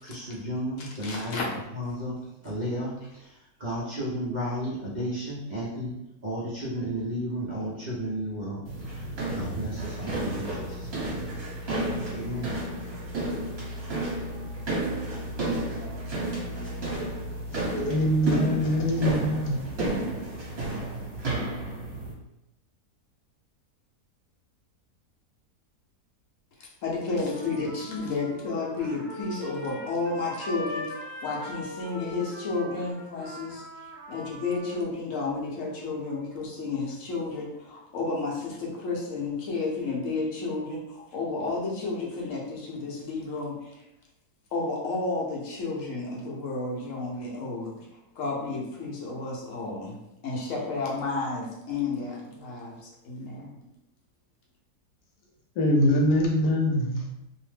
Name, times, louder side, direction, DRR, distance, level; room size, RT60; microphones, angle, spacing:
voice 1, 0.0-2.2 2.4-5.9 6.2-11.2 12.1-12.5, equal, 85° right, -8 dB, 0.4 m, -33 dB
voice 2, 0.8-1.5 26.6-33.6 34.1-43.7 44.5-47.8 48.2-50.0 50.2-53.6, left 3 dB, 65° left, -3 dB, 0.9 m, -32 dB
sound 1, 8.7-22.1, right 1 dB, 45° right, 1.1 m, -32 dB
voice 3, 17.7-19.6 55.6-57.1, equal, 80° left, 0 dB, 1.2 m, -23 dB
Trumpet, 27.1-34.8, left 1 dB, 15° left, 0.8 m, -41 dB
2.8 x 2.0 x 3.2 m, 0.89 s
omnidirectional pair, 1.7 m